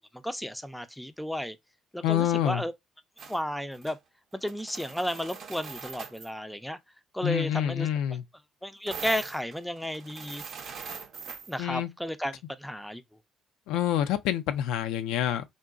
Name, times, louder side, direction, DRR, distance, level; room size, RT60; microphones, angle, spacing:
voice 1, 0.2-1.6 1.9-2.7 3.3-4.0 4.4-6.8 7.1-7.9 8.6-10.4 11.5-12.3 12.6-13.0, equal, 5° left, 0.5 m, -33 dB
voice 2, 2.0-2.6 7.2-8.2 11.6-11.9 13.7-15.4, left 11 dB, 75° left, 0.4 m, -27 dB
sound 1, 3.2-3.4 3.7-4.0 4.3-6.3 8.9-11.6, right 6 dB, 55° right, 0.6 m, -42 dB
3.8 x 2.2 x 2.4 m
hypercardioid pair, 60°, 0 cm